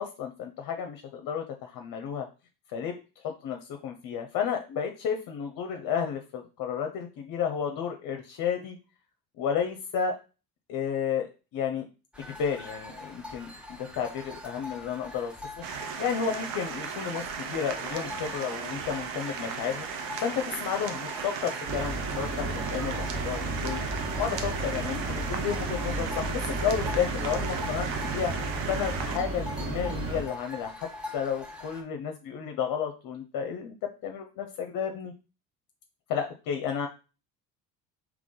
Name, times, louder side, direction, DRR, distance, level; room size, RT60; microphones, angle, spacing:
voice 1, 0.0-2.3 2.7-8.8 9.4-10.2 10.7-11.9 12.2-15.4 16.0-19.9 20.2-28.3 28.7-30.9 31.1-35.1 36.1-36.9, left 7 dB, 45° left, 4 dB, 0.7 m, -32 dB
sound 1, 12.1-31.8, left 2 dB, ahead, 0.9 m, -44 dB
sound 2, 15.6-29.2, right 6 dB, 60° right, 0.9 m, -36 dB
sound 3, 21.7-30.2, right 2 dB, 25° right, 1.0 m, -33 dB
3.6 x 3.0 x 3.8 m, 0.33 s
hypercardioid pair, 60°, 49 cm